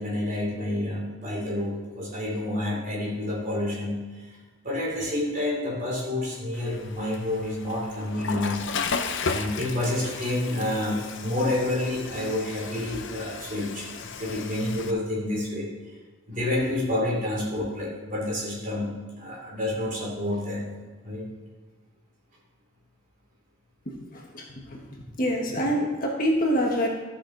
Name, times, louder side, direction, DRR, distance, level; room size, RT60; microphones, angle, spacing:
voice 1, 0.0-4.4 4.6-8.6 9.2-13.9 14.2-15.9 16.3-20.6 21.0-21.2, left 1 dB, 40° right, -4 dB, 3.1 m, -29 dB
Water / Toilet flush, 6.5-14.9, left 5 dB, 60° left, 0.6 m, -35 dB
voice 2, 24.1-26.9, equal, 40° left, -1 dB, 1.4 m, -26 dB
13.5 x 5.9 x 3.9 m, 1.3 s
head